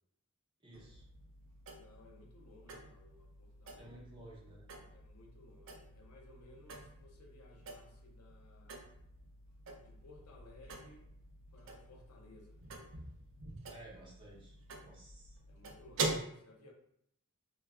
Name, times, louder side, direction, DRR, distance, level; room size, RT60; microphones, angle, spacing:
voice 1, 0.6-1.0 3.7-4.6 13.7-15.4, right 1 dB, 20° right, -5 dB, 0.8 m, -55 dB
sound 1, 0.7-16.2, right 3 dB, 55° right, 0.4 m, -46 dB
voice 2, 1.7-4.0 4.9-9.0 9.8-11.0 11.5-12.6 15.5-16.7, left 2 dB, 85° left, 1 dB, 0.6 m, -60 dB
3.0 x 2.2 x 2.3 m, 0.73 s
head